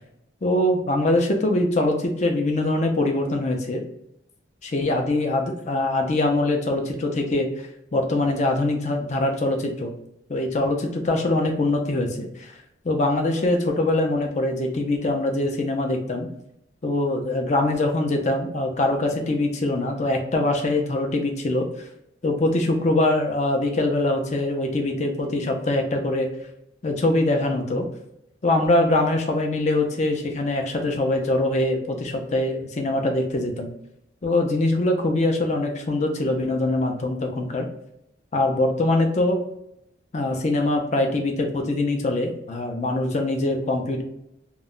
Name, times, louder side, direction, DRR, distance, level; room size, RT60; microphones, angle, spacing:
voice 1, 0.4-3.8 4.6-7.5 7.9-9.9 10.3-12.5 12.8-16.3 16.8-21.7 22.2-26.3 26.8-27.9 28.4-33.7 34.2-37.7 38.3-39.4 40.1-44.0, left 2 dB, 40° left, 3 dB, 0.5 m, -23 dB
2.2 x 2.1 x 3.6 m, 0.78 s
head